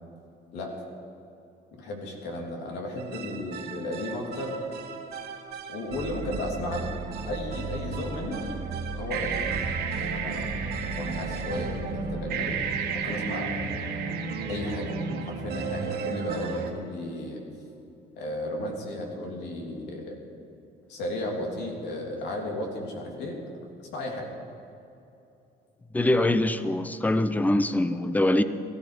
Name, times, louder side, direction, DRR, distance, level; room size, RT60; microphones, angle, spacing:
voice 1, 1.8-4.6 5.7-6.9 7.3-8.5 8.9-9.5 10.0-10.5 10.9-12.6 12.9-13.5 14.5-14.9 15.3-17.4 18.2-20.2 20.9-23.4 23.9-24.3, left 1 dB, 85° left, 0 dB, 3.3 m, -34 dB
sound 1, 3.0-16.7, right 5 dB, 75° right, 1.9 m, -33 dB
voice 2, 25.9-28.4, left 1 dB, 10° left, 12 dB, 0.7 m, -23 dB
18.0 x 14.0 x 5.1 m, 2.8 s
cardioid pair, 110°, 17 cm